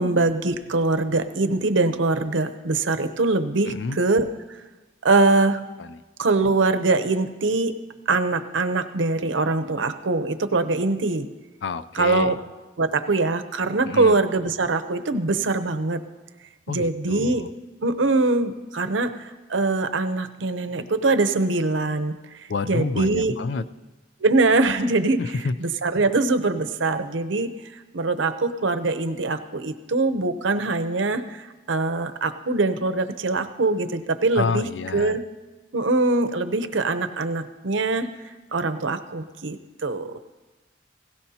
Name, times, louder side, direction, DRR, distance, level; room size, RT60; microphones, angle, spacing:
voice 1, 0.0-4.3 5.0-5.6 6.2-7.7 8.1-11.3 11.9-12.4 12.8-16.0 16.7-17.4 17.8-22.1 22.6-23.3 24.2-25.2 25.6-34.7 34.9-35.2 35.7-38.1 38.5-40.2, right 3 dB, 85° right, 10 dB, 0.8 m, -23 dB
voice 2, 3.7-4.0 5.8-6.0 11.6-12.4 13.8-14.2 16.7-17.5 22.5-23.6 25.2-25.6 34.4-35.2, left 4 dB, 70° left, 13 dB, 0.4 m, -29 dB
17.0 x 16.5 x 2.8 m, 1.2 s
head